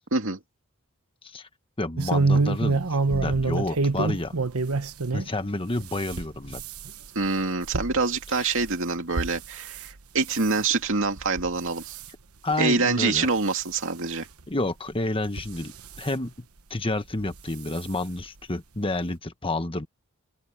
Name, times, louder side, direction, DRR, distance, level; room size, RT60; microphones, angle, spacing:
voice 1, 1.8-2.8 3.1-4.3 5.1-6.6 8.4-8.5 12.4-13.3 14.5-16.3 16.7-19.9, left 2 dB, 25° left, 1.3 m, -29 dB
sound 1, 2.0-5.3 5.7-9.9 10.3-10.6 11.2-11.5 11.8-12.1 12.7-12.8 13.1-13.2 14.4-14.5 15.2-16.1 17.2-17.4 17.8-17.9 18.2-18.3, right 3 dB, 85° right, 1.1 m, -27 dB
voice 2, 7.1-12.0 12.6-14.3, right 3 dB, 65° right, 2.5 m, -25 dB
open air
head